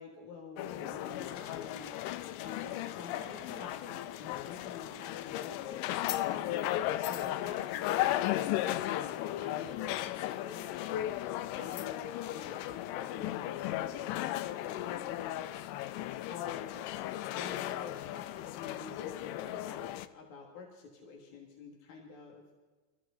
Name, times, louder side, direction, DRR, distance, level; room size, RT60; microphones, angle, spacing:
voice 1, 0.0-1.9 2.4-6.7 7.1-11.1 11.5-13.4 13.7-15.4 16.3-16.7 17.3-22.4, left 5 dB, 55° left, 0 dB, 2.2 m, -47 dB
sound 1, 0.6-20.1, left 14 dB, 90° left, 3.0 m, -36 dB
24.5 x 14.0 x 3.8 m, 1.4 s
omnidirectional pair, 5.2 m